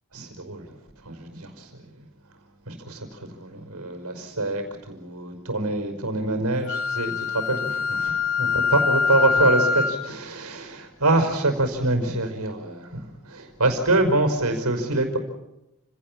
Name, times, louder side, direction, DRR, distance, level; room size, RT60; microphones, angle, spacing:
voice 1, 0.1-2.1 2.7-15.2, right 2 dB, 90° right, 6 dB, 5.4 m, -25 dB
Wind instrument woodwind instrument, 6.7-10.0, left 5 dB, 65° left, 3.0 m, -24 dB
30.0 x 17.5 x 7.4 m, 0.90 s
head